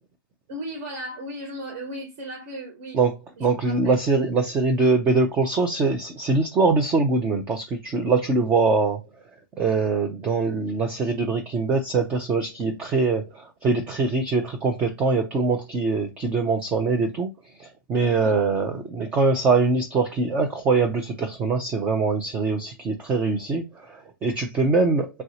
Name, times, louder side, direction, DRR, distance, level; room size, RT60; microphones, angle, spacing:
voice 1, 0.5-3.0 3.4-4.0 18.0-18.4, equal, 40° right, 1.4 m, -36 dB
voice 2, 3.4-9.0 9.6-17.3 17.6-25.2, right 3 dB, 10° right, 0.3 m, -23 dB
3.1 x 2.7 x 2.7 m
hypercardioid pair, 150°, 11 cm